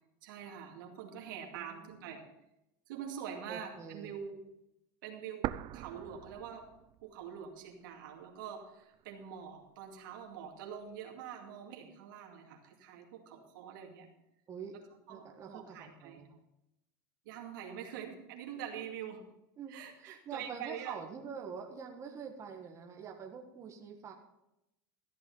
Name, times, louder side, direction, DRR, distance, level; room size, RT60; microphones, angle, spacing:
voice 1, 0.2-2.2 2.9-4.4 5.0-6.7 7.0-14.1 14.7-14.8 15.1-16.2 17.3-19.2 19.7-21.0, right 8 dB, 80° right, 2 dB, 2.4 m, -45 dB
voice 2, 1.5-2.0 3.5-4.1 14.5-14.7 15.1-16.4 19.6-24.1, right 6 dB, 30° right, 2 dB, 1.6 m, -46 dB
sound 1, 5.4-7.4 7.7-7.8 8.5-9.4, right 14 dB, 45° right, 0.5 m, -41 dB
14.0 x 7.8 x 5.5 m, 0.86 s
supercardioid pair, 125°, 11 cm